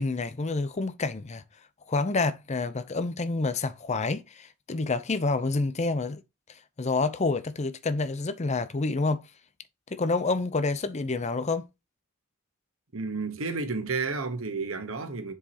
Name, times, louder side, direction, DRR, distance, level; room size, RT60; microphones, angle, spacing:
voice 1, 0.0-1.4 1.9-6.2 6.8-9.2 9.9-11.6, left 3 dB, 30° left, 0.6 m, -28 dB
voice 2, 12.9-15.3, right 4 dB, 70° right, 1.2 m, -31 dB
7.3 x 4.7 x 2.9 m
head